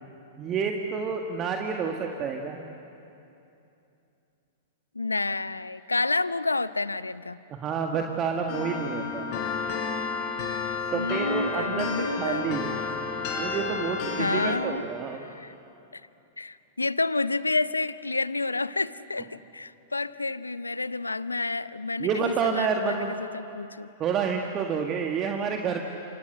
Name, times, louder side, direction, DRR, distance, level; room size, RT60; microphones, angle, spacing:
voice 1, 0.4-2.6 7.5-9.3 10.9-12.8 13.4-15.2 22.0-23.1 24.0-25.8, right 6 dB, 30° right, 2 dB, 1.8 m, -29 dB
voice 2, 4.9-7.4 10.9-12.5 14.2-14.8 15.3-15.5 15.9-16.0 16.4-23.9, left 3 dB, 85° left, 17 dB, 0.6 m, -29 dB
sound 1, 8.5-14.6, left 5 dB, 45° left, 5.4 m, -31 dB
28.0 x 26.0 x 7.8 m, 2.8 s
figure-of-eight pair, 100°, 0 cm